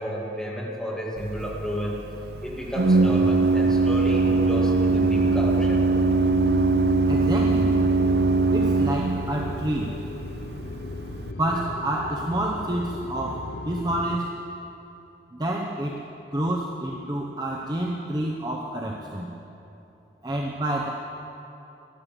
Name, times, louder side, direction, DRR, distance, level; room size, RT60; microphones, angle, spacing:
voice 1, 0.0-2.0 2.4-5.8, equal, 5° left, -4 dB, 2.2 m, -31 dB
Organ, 1.2-11.3, right 3 dB, 60° right, 0.5 m, -22 dB
sound 1, 3.6-14.2, left 3 dB, 75° left, 0.7 m, -35 dB
voice 2, 7.1-7.8 8.5-9.9 11.4-14.3 15.3-16.0 16.3-19.3 20.2-20.9, right 1 dB, 20° right, -2 dB, 0.8 m, -28 dB
13.0 x 11.5 x 7.6 m, 2.9 s
head